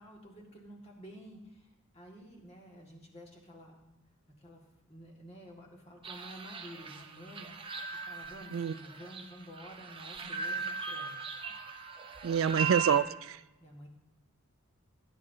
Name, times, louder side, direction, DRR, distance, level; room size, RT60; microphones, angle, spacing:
voice 1, 0.0-3.9 4.4-7.5 8.1-11.4 13.6-13.9, equal, 30° left, 0 dB, 2.0 m, -51 dB
sound 1, 6.0-13.0, right 5 dB, 25° right, 0.7 m, -38 dB
voice 2, 12.2-13.4, right 8 dB, 65° right, 15 dB, 0.3 m, -27 dB
17.5 x 9.9 x 2.8 m, 1.0 s
head